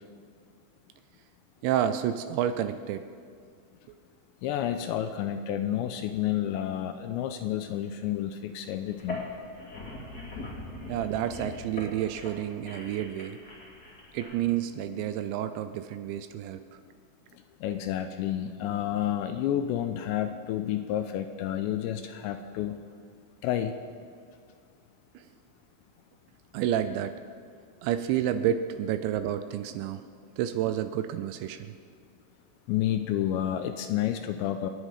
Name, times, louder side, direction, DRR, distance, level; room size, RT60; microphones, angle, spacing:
voice 1, 1.6-3.1 3.9-4.0 10.9-13.4 14.1-16.6 25.2-25.3 26.5-27.1 27.8-30.0 30.4-31.7, right 10 dB, 80° right, 10 dB, 2.8 m, -30 dB
voice 2, 4.4-9.2 17.6-22.8 23.4-23.7 32.7-34.7, left 11 dB, 80° left, 8 dB, 2.7 m, -30 dB
sound 1, 8.9-14.3, left 2 dB, 30° left, 1.9 m, -41 dB
28.5 x 10.0 x 5.0 m, 2.1 s
omnidirectional pair, 5.5 m